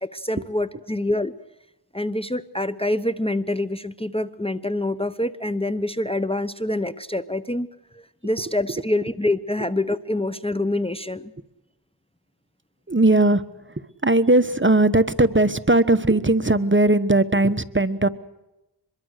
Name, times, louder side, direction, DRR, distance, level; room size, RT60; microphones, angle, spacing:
voice 1, 0.0-1.3 1.9-7.7 7.9-11.3, left 1 dB, 15° left, 12 dB, 0.9 m, -26 dB
voice 2, 12.9-18.1, right 2 dB, 25° right, 12 dB, 1.1 m, -19 dB
25.0 x 22.0 x 6.5 m, 0.96 s
wide cardioid pair, 40°, 43 cm